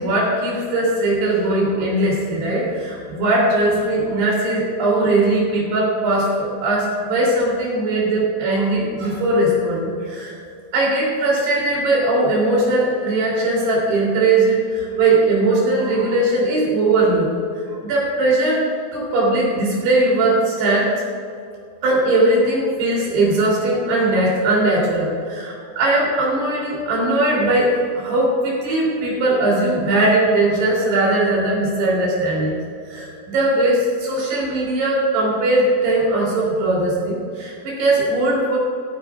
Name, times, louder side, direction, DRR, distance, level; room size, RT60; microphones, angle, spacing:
voice 1, 0.0-10.4 10.7-17.3 17.8-18.6 18.9-20.9 21.8-32.6 32.9-38.6, right 2 dB, 90° right, -4 dB, 5.5 m, -19 dB
16.0 x 15.0 x 2.5 m, 2.4 s
omnidirectional pair, 4.6 m